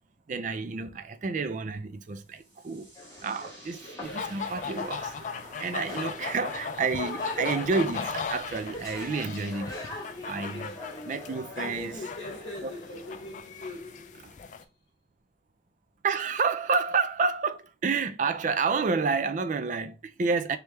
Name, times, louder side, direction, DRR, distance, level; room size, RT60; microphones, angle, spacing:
voice 1, 0.3-2.9 3.2-5.1 5.6-9.8 10.2-10.8 11.0-11.9 12.6-12.7 16.0-20.6, right 4 dB, 45° right, 0.4 m, -29 dB
sound 1, 2.0-9.2, equal, 30° right, 1.7 m, -52 dB
sound 2, 2.9-13.3, left 1 dB, 20° left, 1.4 m, -42 dB
sound 3, 4.0-14.6, left 6 dB, 45° left, 0.4 m, -38 dB
voice 2, 11.5-14.4, left 1 dB, 75° left, 0.8 m, -41 dB
3.3 x 3.3 x 3.1 m
head